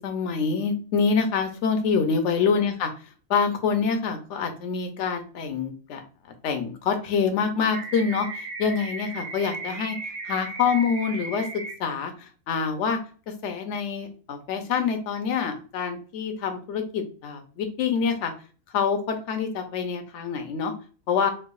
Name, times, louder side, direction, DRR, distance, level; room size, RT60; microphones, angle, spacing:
voice 1, 0.0-2.9 3.3-6.0 6.4-10.0 10.2-11.5 11.8-13.0 13.4-18.3 18.7-20.7 21.1-21.3, left 6 dB, 60° left, 6 dB, 0.9 m, -26 dB
sound 1, 7.7-11.7, right 3 dB, 55° right, 1.0 m, -36 dB
4.6 x 2.3 x 2.3 m, 0.38 s
omnidirectional pair, 1.6 m